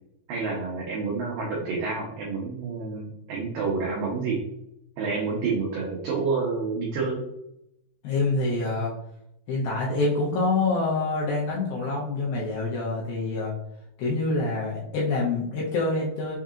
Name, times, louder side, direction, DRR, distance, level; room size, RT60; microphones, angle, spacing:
voice 1, 0.3-4.4 5.0-7.2, right 4 dB, 85° right, -3 dB, 1.9 m, -28 dB
voice 2, 8.0-8.9 9.5-13.5 14.0-16.4, left 3 dB, 75° left, -5 dB, 2.2 m, -26 dB
6.4 x 2.8 x 2.4 m, 0.80 s
omnidirectional pair, 5.1 m